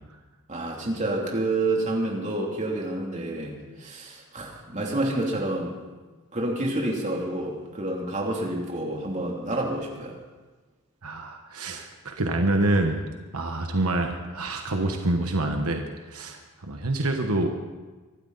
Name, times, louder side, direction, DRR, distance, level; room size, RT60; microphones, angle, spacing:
voice 1, 0.5-5.8 6.3-10.2, right 2 dB, 30° right, -2 dB, 2.9 m, -28 dB
voice 2, 11.0-13.0 13.3-17.5, right 2 dB, 80° right, 4 dB, 1.2 m, -26 dB
24.5 x 12.5 x 4.1 m, 1.3 s
head